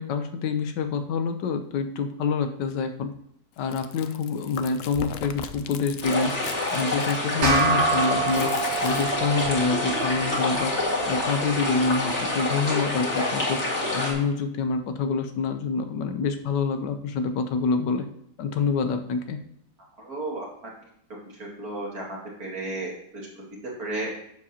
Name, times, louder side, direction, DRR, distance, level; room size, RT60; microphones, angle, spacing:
voice 1, 0.0-3.1 3.6-6.3 6.7-8.5 8.8-10.7 11.1-13.6 13.9-18.0 18.4-19.4, left 5 dB, 85° left, 8 dB, 1.4 m, -26 dB
Chewing mastication, 3.6-9.6, left 8 dB, 70° left, 0.8 m, -39 dB
sound 1, 6.0-14.1, left 2 dB, 40° left, 2.3 m, -27 dB
sound 2, 7.4-12.2, right 4 dB, 80° right, 2.1 m, -28 dB
voice 2, 20.0-20.4 21.6-22.0 22.4-24.2, right 2 dB, 60° right, -3 dB, 2.8 m, -33 dB
10.5 x 7.3 x 2.8 m, 0.72 s
omnidirectional pair, 1.8 m